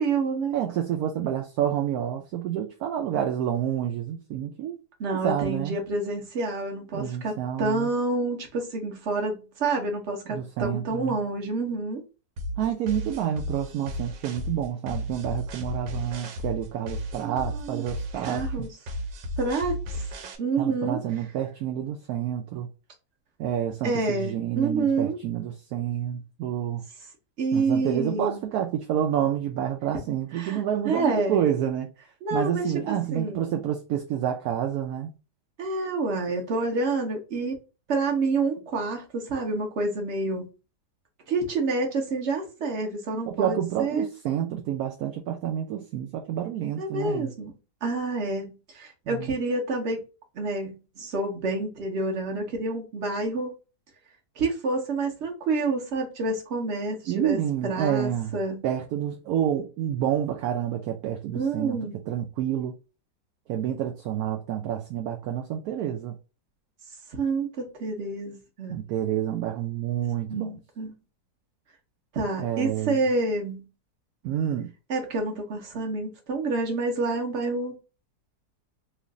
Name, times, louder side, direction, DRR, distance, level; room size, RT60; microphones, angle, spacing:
voice 1, 0.0-0.6 5.0-7.3 7.6-12.0 17.2-17.8 18.1-18.7 19.4-20.1 20.4-21.0 23.8-25.2 27.4-28.4 30.3-31.4 32.2-33.5 35.6-37.6 37.9-40.5 41.3-44.1 46.8-47.5 47.8-50.0 50.3-53.5 54.4-58.6 61.3-62.0 67.1-68.8 70.3-70.9 72.1-73.7 74.9-77.8, right 3 dB, 45° right, 1.2 m, -28 dB
voice 2, 0.5-4.8 5.1-5.8 6.9-7.9 10.3-11.2 12.6-18.7 20.6-22.7 23.4-26.9 27.5-31.9 32.3-35.1 43.3-47.3 49.1-49.3 57.1-58.4 58.6-61.8 62.1-62.7 63.5-66.2 68.7-70.5 72.4-73.0 74.2-74.7, right 10 dB, 70° right, 1.0 m, -29 dB
sound 1, 12.4-20.4, equal, 85° right, 1.3 m, -34 dB
3.1 x 2.5 x 3.6 m
omnidirectional pair, 1.8 m